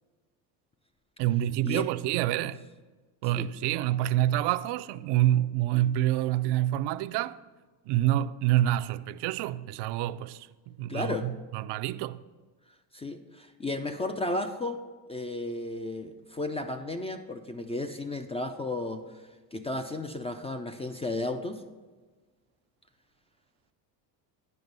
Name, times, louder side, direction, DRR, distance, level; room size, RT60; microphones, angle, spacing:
voice 1, 1.2-2.6 3.2-7.4 7.9-12.2, right 13 dB, 60° right, 0.5 m, -27 dB
voice 2, 10.9-11.3 12.9-14.8 15.1-19.2 19.5-21.6, left 2 dB, 15° left, 0.3 m, -33 dB
9.7 x 5.2 x 5.2 m
supercardioid pair, 85°, 49 cm